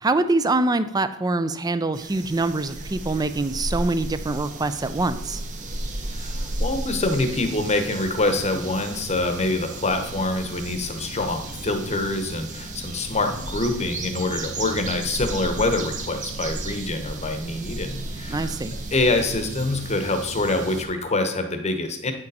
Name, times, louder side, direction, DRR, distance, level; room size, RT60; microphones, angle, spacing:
voice 1, 0.0-5.4 18.3-18.8, right 2 dB, 15° right, 12 dB, 0.4 m, -24 dB
sound 1, 1.9-20.9, right 2 dB, 35° right, 0.9 m, -33 dB
voice 2, 6.1-18.5 18.9-22.1, left 2 dB, 30° left, 7 dB, 0.9 m, -25 dB
8.6 x 6.7 x 4.1 m, 0.82 s
head